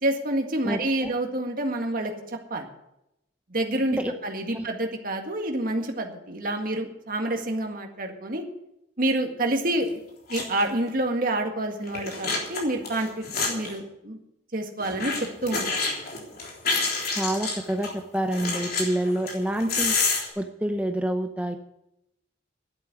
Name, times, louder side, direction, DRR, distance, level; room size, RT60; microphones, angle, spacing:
voice 1, 0.0-2.1 2.5-2.7 3.5-8.4 9.0-10.0 10.3-14.2 14.5-15.1 15.4-16.1, right 1 dB, 45° right, 3 dB, 1.9 m, -28 dB
voice 2, 0.6-1.1 3.9-4.1 4.5-4.7 17.1-20.0 20.4-21.6, right 1 dB, 5° right, 5 dB, 0.8 m, -27 dB
sound 1, 9.8-9.9 10.3-10.6 10.9-11.0 11.8-13.8 14.8-17.9 18.3-20.3, left 4 dB, 50° left, 3.5 m, -28 dB
11.0 x 8.6 x 9.7 m, 0.84 s
head